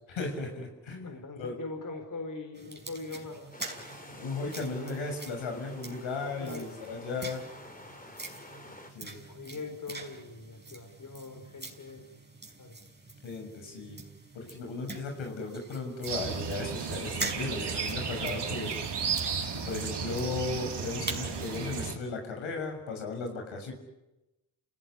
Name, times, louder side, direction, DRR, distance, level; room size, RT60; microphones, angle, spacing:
voice 1, 0.1-1.5 4.1-7.4 8.9-9.2 13.2-14.0 14.3-19.0 19.5-23.7, left 3 dB, 80° left, 3 dB, 6.7 m, -36 dB
voice 2, 1.0-3.5 6.4-6.7 9.3-12.1 12.6-12.8 13.6-13.9, left 3 dB, 40° left, 6 dB, 4.6 m, -41 dB
sound 1, 2.5-21.7, right 3 dB, 20° right, 5.5 m, -45 dB
sound 2, 3.5-8.9, left 1 dB, 20° left, 4.2 m, -49 dB
sound 3, 16.1-21.9, right 6 dB, 60° right, 3.8 m, -34 dB
28.0 x 18.0 x 9.8 m, 0.97 s
supercardioid pair, 60°, 46 cm